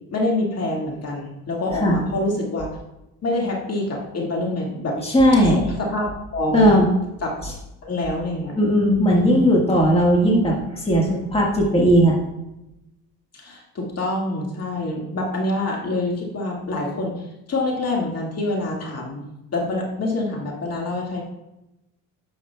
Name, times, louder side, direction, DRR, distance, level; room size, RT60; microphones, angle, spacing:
voice 1, 0.1-2.7 3.2-5.0 5.4-6.7 7.2-7.4 7.8-8.6 9.0-9.4 13.3-17.1 17.5-19.2 19.5-21.2, left 2 dB, 45° left, -2 dB, 1.9 m, -26 dB
voice 2, 5.0-5.7 6.5-6.9 7.4-7.5 8.6-12.2, equal, 15° left, -3 dB, 1.5 m, -17 dB
10.5 x 6.3 x 2.3 m, 0.91 s
cardioid pair, 90°, 35 cm